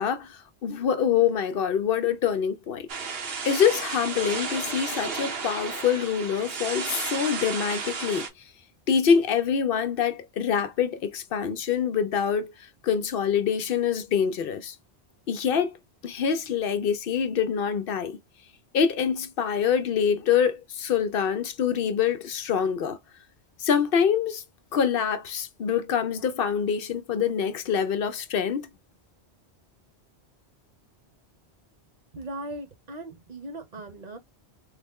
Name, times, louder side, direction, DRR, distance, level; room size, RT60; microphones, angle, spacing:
voice 1, 0.0-2.9 3.4-8.3 8.9-14.8 15.3-15.8 16.0-18.2 18.7-23.0 23.6-24.4 24.7-28.7, left 7 dB, 65° left, 0.7 m, -25 dB
sound 1, 2.9-8.3, right 5 dB, 70° right, 1.1 m, -33 dB
voice 2, 32.1-34.2, right 1 dB, 45° right, 1.0 m, -38 dB
3.6 x 2.1 x 3.6 m
omnidirectional pair, 1.1 m